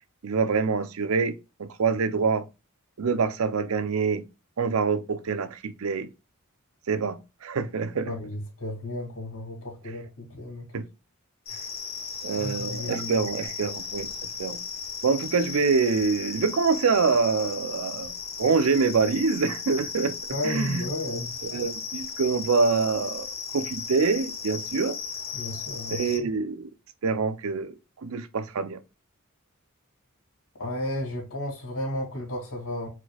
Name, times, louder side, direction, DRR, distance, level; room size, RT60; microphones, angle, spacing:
voice 1, 0.2-2.5 3.0-4.2 4.6-6.1 6.9-8.1 10.7-10.9 12.2-14.1 14.4-14.6 15.0-18.1 18.4-20.1 20.4-20.8 21.4-23.3 23.5-25.0 25.9-26.7 27.0-27.7 28.0-28.8, right 4 dB, 70° right, 0.5 m, -25 dB
voice 2, 8.1-10.6 12.3-13.3 20.3-21.7 25.3-26.3 30.6-32.9, left 1 dB, 75° left, 2.3 m, -33 dB
sound 1, 11.5-26.2, left 5 dB, 45° left, 1.3 m, -36 dB
4.4 x 4.1 x 2.3 m
head